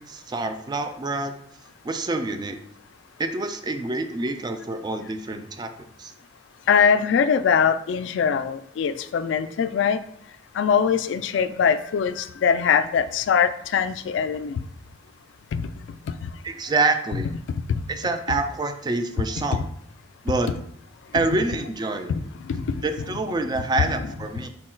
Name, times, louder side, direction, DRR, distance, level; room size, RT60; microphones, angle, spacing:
voice 1, 0.0-1.3 1.8-2.6 3.2-6.1 16.4-17.3 17.9-19.6 20.2-20.5 21.1-22.1 22.8-24.5, right 3 dB, 25° right, 7 dB, 0.3 m, -27 dB
voice 2, 6.7-10.0 10.5-14.6 15.5-15.7 16.1-16.3 17.5-17.6 19.5-19.6 22.1-22.8, left 6 dB, 70° left, 12 dB, 0.3 m, -22 dB
4.5 x 2.3 x 4.3 m, 0.67 s
head